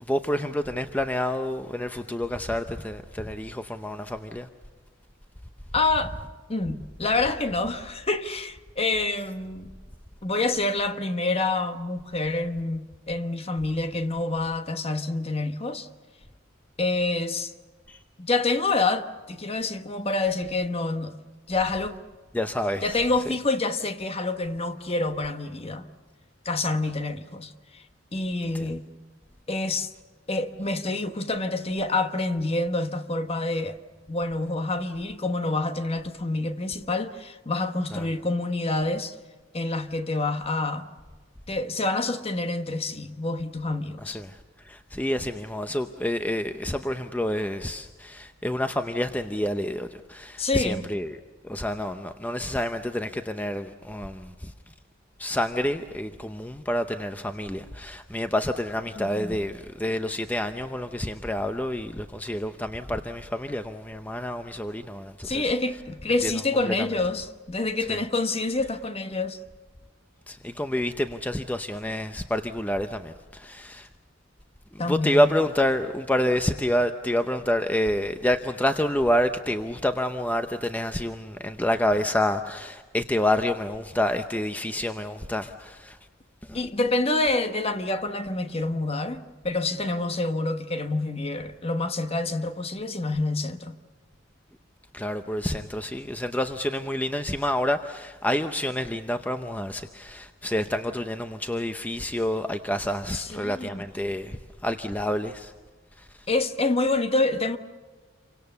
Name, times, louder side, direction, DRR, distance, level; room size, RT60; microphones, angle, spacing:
voice 1, 0.1-4.5 17.9-18.0 22.3-23.0 28.5-28.7 37.9-38.1 44.0-51.2 51.4-54.5 55.2-65.5 66.2-66.3 66.7-66.9 67.9-68.0 70.3-73.9 74.7-86.0 86.4-86.6 94.9-105.5 106.0-106.1, left 1 dB, 10° left, 0.7 m, -28 dB
voice 2, 5.7-6.1 6.5-9.7 10.2-15.9 16.8-17.5 18.2-21.1 21.5-22.0 22.8-25.8 26.4-27.8 28.1-28.8 29.5-29.9 30.3-33.8 34.1-39.1 39.5-40.9 41.5-44.2 50.4-50.8 59.0-59.3 65.2-69.4 74.8-75.3 86.5-93.8 103.1-103.8 106.3-107.6, left 2 dB, 30° left, 1.1 m, -27 dB
28.5 x 24.5 x 6.9 m
head